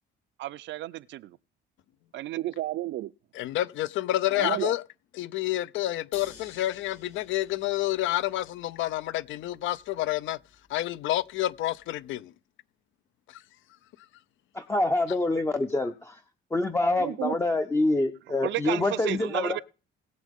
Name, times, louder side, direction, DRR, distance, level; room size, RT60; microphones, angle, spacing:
voice 1, 0.4-1.4 2.1-3.1 4.4-4.7 17.0-17.4 18.3-19.6, right 15 dB, 65° right, 0.5 m, -32 dB
voice 2, 3.4-4.8 5.2-10.4 10.7-12.3, left 15 dB, 75° left, 0.5 m, -29 dB
sound 1, 6.1-12.2, left 6 dB, 50° left, 2.9 m, -54 dB
voice 3, 14.5-16.2 16.5-19.6, left 2 dB, 15° left, 0.5 m, -26 dB
20.5 x 7.4 x 3.6 m
cardioid pair, 155°, 20 cm